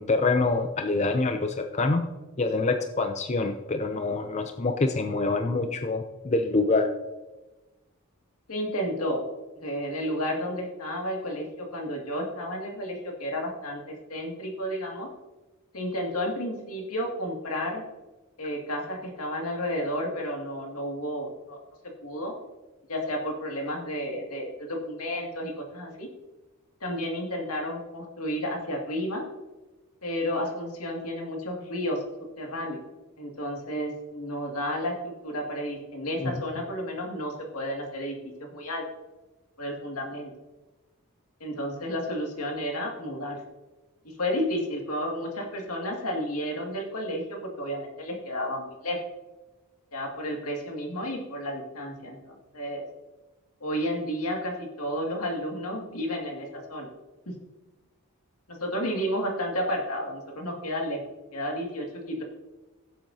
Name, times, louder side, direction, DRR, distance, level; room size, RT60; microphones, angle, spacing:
voice 1, 0.0-2.1 2.4-6.9 36.2-36.4, left 3 dB, 30° left, 6 dB, 0.5 m, -26 dB
voice 2, 8.5-9.2 9.6-15.1 15.7-17.8 18.4-21.6 22.0-22.3 22.9-26.1 26.8-29.3 30.0-32.0 32.4-32.8 33.2-38.8 39.6-40.3 41.4-43.4 44.0-49.0 49.9-52.8 53.6-56.9 57.3-57.4 58.5-61.0 61.3-62.2, equal, 85° left, 1 dB, 2.1 m, -32 dB
16.0 x 7.7 x 2.7 m, 1.1 s
head